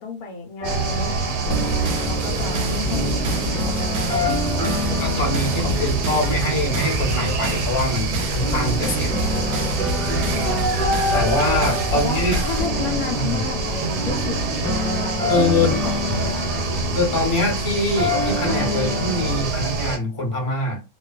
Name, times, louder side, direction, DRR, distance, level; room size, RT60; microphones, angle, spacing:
voice 1, 0.0-6.0 10.3-10.7 11.9-16.8, left 4 dB, 70° left, 0.9 m, -33 dB
sound 1, 0.6-19.5, left 2 dB, 5° left, 1.3 m, -28 dB
sound 2, 0.6-20.0, right 3 dB, 85° right, 1.2 m, -26 dB
sound 3, 1.5-12.7, right 2 dB, 60° right, 0.7 m, -28 dB
voice 2, 5.0-9.1 11.1-12.4 13.1-13.4 15.3-15.8 16.9-20.8, left 2 dB, 30° left, 0.6 m, -24 dB
2.5 x 2.3 x 2.3 m
omnidirectional pair, 1.7 m